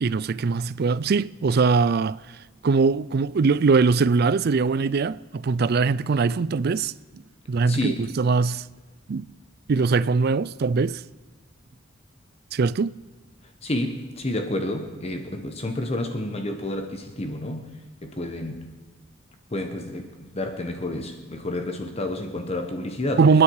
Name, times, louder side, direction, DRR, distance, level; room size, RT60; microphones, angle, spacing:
voice 1, 0.0-2.2 2.6-6.9 7.5-8.7 9.1-9.3 9.7-11.0 12.5-13.0 23.2-23.4, right 4 dB, 55° right, 0.4 m, -21 dB
voice 2, 7.6-8.2 13.6-17.7 18.0-18.7 19.5-23.3, left 1 dB, 30° left, 1.1 m, -30 dB
28.0 x 9.9 x 4.8 m
head